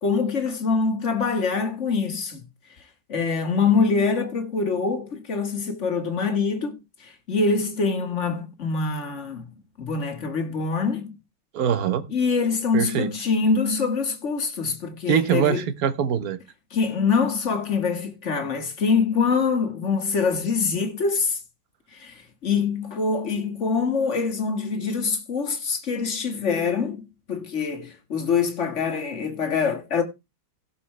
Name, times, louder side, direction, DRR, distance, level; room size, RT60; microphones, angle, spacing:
voice 1, 0.0-2.4 3.1-11.2 12.1-15.6 16.7-21.4 21.9-22.1 22.4-30.0, left 5 dB, 35° left, 1.9 m, -24 dB
voice 2, 11.5-12.0 12.7-13.1 15.1-16.4, right 8 dB, 55° right, 1.2 m, -23 dB
17.0 x 7.0 x 3.3 m
omnidirectional pair, 2.3 m